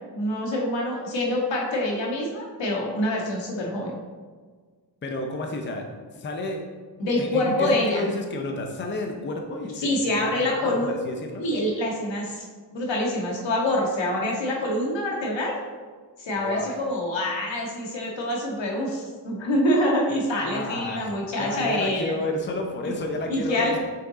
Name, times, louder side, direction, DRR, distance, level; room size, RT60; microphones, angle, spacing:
voice 1, 0.1-4.0 7.0-8.0 9.7-10.9 11.4-12.4 12.7-15.6 16.2-22.1 23.3-23.7, left 1 dB, 80° left, -2 dB, 1.7 m, -26 dB
voice 2, 5.0-5.8 6.2-6.6 7.2-9.9 10.2-11.4 16.4-16.8 20.5-21.1 21.4-23.8, left 2 dB, 25° left, 2 dB, 0.6 m, -31 dB
6.2 x 5.7 x 4.0 m, 1.5 s
wide cardioid pair, 175°, 44 cm